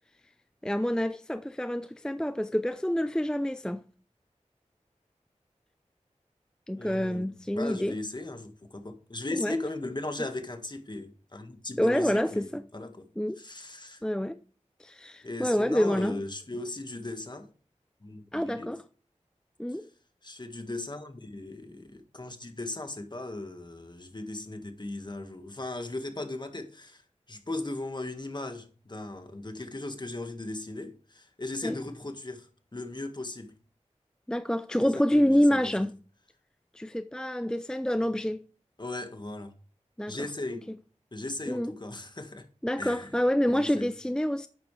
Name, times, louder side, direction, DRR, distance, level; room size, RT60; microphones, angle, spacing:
voice 1, 0.6-3.8 6.7-8.0 9.4-9.6 11.8-12.6 13.2-13.4 14.0-14.4 14.8-16.2 18.3-18.8 19.6-19.9 31.6-31.8 34.3-35.9 36.7-38.4 40.0-40.2 41.5-41.7 42.6-44.5, equal, 5° left, 0.5 m, -27 dB
voice 2, 6.8-13.1 13.4-14.0 15.2-17.5 18.0-18.7 19.7-19.8 20.2-27.0 27.3-33.5 34.8-35.7 38.8-39.5 40.1-40.7 41.1-42.5 42.8-43.1 43.5-43.9, left 2 dB, 35° left, 1.7 m, -38 dB
11.5 x 8.7 x 3.3 m
wide cardioid pair, 60°, 12 cm